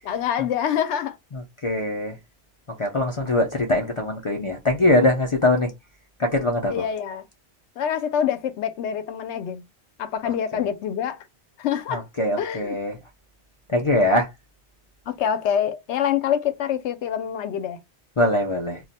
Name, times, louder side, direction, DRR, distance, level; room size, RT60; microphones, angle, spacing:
voice 1, 0.0-1.2 6.7-7.2 7.8-9.6 10.0-11.2 11.6-12.1 12.4-12.8 15.1-17.8, left 9 dB, 85° left, 0.9 m, -26 dB
voice 2, 1.3-2.2 2.8-5.7 6.2-6.8 11.9-13.0 13.7-14.3 18.2-18.8, left 1 dB, 45° left, 0.4 m, -22 dB
2.3 x 2.1 x 3.9 m
omnidirectional pair, 1.2 m